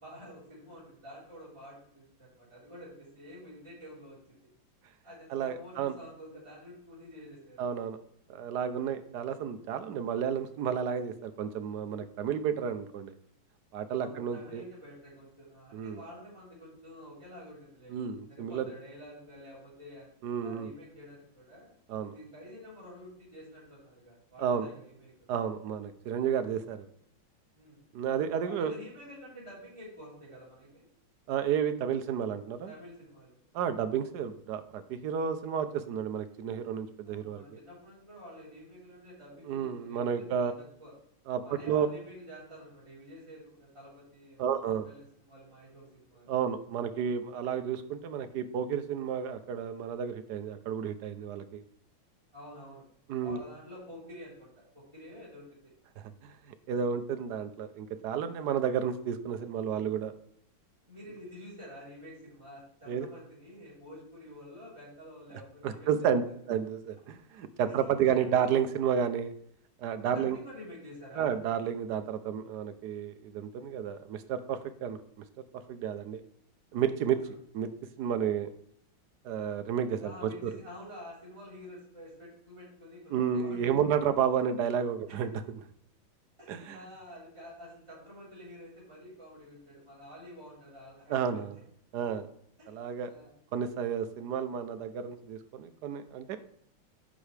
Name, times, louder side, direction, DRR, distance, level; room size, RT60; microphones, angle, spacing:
voice 1, 0.0-4.2 5.0-7.6 13.9-18.0 18.3-20.1 20.4-25.1 27.5-27.9 28.4-30.8 32.7-33.4 37.0-40.9 41.4-46.4 52.3-52.9 53.2-55.7 58.3-58.6 60.9-66.3 67.7-68.6 70.1-71.4 77.2-77.3 80.0-83.8 85.1-85.2 86.4-91.6 92.6-93.3, left 1 dB, 15° right, -8 dB, 3.9 m, -49 dB
voice 2, 5.3-5.9 7.6-8.0 8.3-13.1 13.7-14.6 15.7-16.0 17.9-18.7 20.2-20.7 21.9-22.1 24.4-24.7 25.3-26.9 27.9-28.7 31.3-32.7 33.5-37.4 39.5-40.5 41.3-41.9 44.4-44.9 46.3-51.6 53.1-53.4 56.0-56.4 56.7-60.1 62.9-63.1 65.6-66.2 66.5-69.3 69.8-70.4 71.2-75.0 75.4-76.2 76.7-77.2 77.5-77.7 78.0-78.5 79.2-80.5 83.1-85.3 86.5-86.8 91.1-91.5 91.9-92.3 92.7-93.1 93.5-96.4, right 8 dB, 65° right, 9 dB, 1.1 m, -31 dB
10.5 x 6.3 x 3.3 m, 0.67 s
omnidirectional pair, 2.2 m